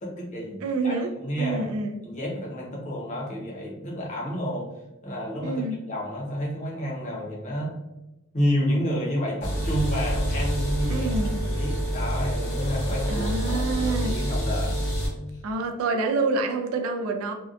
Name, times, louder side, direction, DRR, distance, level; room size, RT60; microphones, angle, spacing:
voice 1, 0.0-1.7 2.0-4.7 5.0-5.6 5.9-7.7 8.3-11.2 11.4-14.8, equal, 35° left, -3 dB, 0.7 m, -30 dB
voice 2, 0.6-1.1 1.4-2.0 5.4-5.8 10.9-11.4 13.1-14.3 15.4-17.3, right 3 dB, 80° right, 4 dB, 0.3 m, -27 dB
sound 1, 9.4-15.1, equal, 85° left, 1.0 m, -27 dB
2.6 x 2.1 x 2.3 m, 1.0 s
head